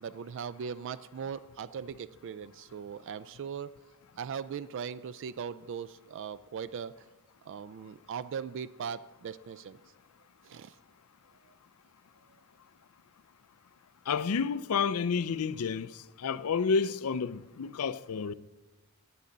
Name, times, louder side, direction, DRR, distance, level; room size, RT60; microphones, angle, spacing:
voice 1, 0.0-3.7 4.2-6.9 7.5-9.8 10.4-10.7, right 7 dB, 60° right, 0.3 m, -39 dB
voice 2, 14.1-18.3, left 5 dB, 85° left, 0.5 m, -30 dB
18.5 x 8.6 x 3.9 m
head